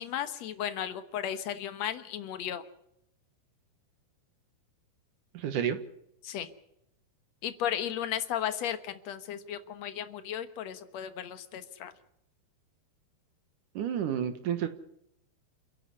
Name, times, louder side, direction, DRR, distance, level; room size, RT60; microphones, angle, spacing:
voice 1, 0.0-2.6 6.2-6.5 7.4-11.9, left 10 dB, 75° left, 11 dB, 1.5 m, -35 dB
voice 2, 5.3-5.8 13.8-14.7, right 9 dB, 65° right, 10 dB, 2.4 m, -30 dB
29.5 x 11.0 x 9.8 m, 0.78 s
omnidirectional pair, 4.8 m